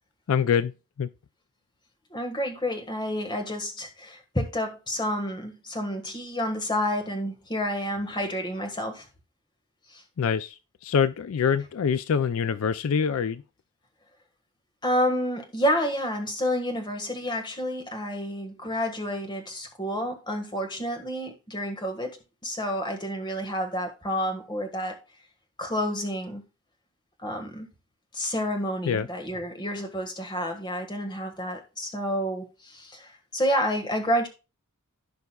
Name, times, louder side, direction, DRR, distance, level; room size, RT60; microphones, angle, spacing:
voice 1, 0.3-0.7 1.0-1.1 10.2-13.4 28.8-29.1, left 7 dB, 70° left, 0.4 m, -25 dB
voice 2, 2.1-9.1 9.9-10.0 14.8-22.2 22.4-25.0 25.6-26.4 27.2-27.7 28.1-34.3, equal, 20° left, 1.6 m, -29 dB
15.5 x 5.3 x 2.3 m
head